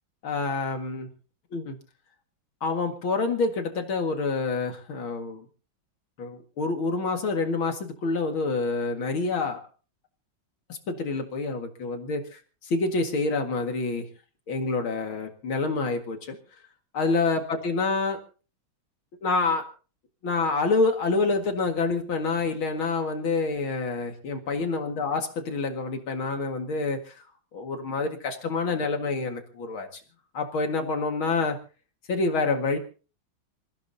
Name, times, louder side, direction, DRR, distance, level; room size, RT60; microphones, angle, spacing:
voice 1, 0.2-1.1 1.5-1.8 2.6-5.4 6.2-9.6 10.7-14.1 14.5-16.4 16.9-18.2 19.2-19.6 20.2-27.2 27.5-30.0 30.3-31.6 32.1-32.8, left 3 dB, 75° left, 4 dB, 2.8 m, -27 dB
28.0 x 16.0 x 2.8 m, 0.37 s
omnidirectional pair, 2.2 m